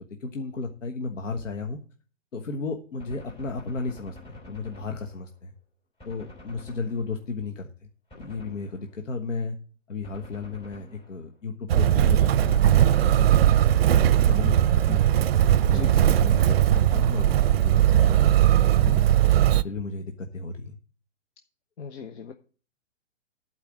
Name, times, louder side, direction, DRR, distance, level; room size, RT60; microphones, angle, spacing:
voice 1, 0.2-1.8 2.3-5.5 6.0-7.7 8.1-9.6 9.9-13.4 13.9-15.0 15.6-19.2 19.6-20.8, left 4 dB, 80° left, 4 dB, 1.4 m, -34 dB
Gunshot gunfire, 3.0-5.5 6.0-7.4 8.1-9.1 10.0-11.4 12.1-13.4, left 1 dB, 15° left, 3.5 m, -49 dB
Motor vehicle (road), 11.7-19.6, right 11 dB, 50° right, 0.6 m, -19 dB
voice 2, 21.8-22.3, left 6 dB, 60° left, 7 dB, 1.0 m, -38 dB
11.5 x 4.8 x 7.4 m, 0.40 s
hypercardioid pair, 130°, 37 cm